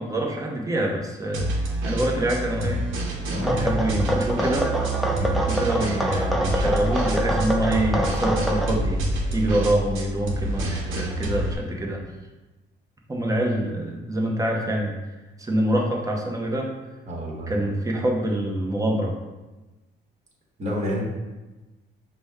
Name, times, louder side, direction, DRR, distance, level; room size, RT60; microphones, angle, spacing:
voice 1, 0.0-1.5 1.8-2.9 3.5-4.7 5.2-9.0 9.3-12.0 13.1-14.9 15.4-16.7 17.5-19.2, right 1 dB, 15° right, -1 dB, 0.8 m, -25 dB
sound 1, 1.3-11.5, right 1 dB, 85° right, 0.8 m, -27 dB
voice 2, 3.3-3.7 17.1-17.6 20.6-21.0, equal, 35° right, -2 dB, 1.2 m, -29 dB
sound 2, 3.4-8.7, equal, ahead, 0.4 m, -26 dB
4.9 x 2.2 x 3.5 m, 1.1 s
cardioid pair, 90°, 20 cm